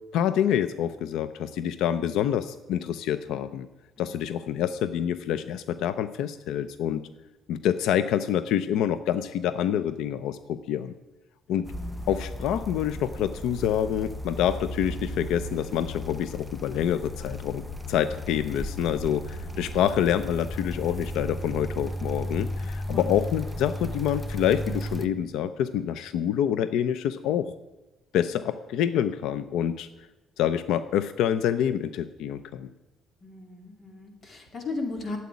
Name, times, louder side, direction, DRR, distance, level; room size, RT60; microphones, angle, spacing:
voice 1, 0.1-3.7 4.0-7.1 7.5-10.9 11.5-11.7 12.1-17.6 17.9-27.5 28.1-29.9 30.4-32.7, left 10 dB, 85° left, 13 dB, 0.6 m, -27 dB
sound 1, 11.6-25.1, equal, ahead, 0.7 m, -35 dB
voice 2, 11.7-12.0 19.5-19.7 22.9-23.1 33.2-35.2, left 3 dB, 30° left, 4 dB, 2.5 m, -36 dB
13.0 x 8.3 x 9.6 m, 1.0 s
cardioid pair, 165°, 0 cm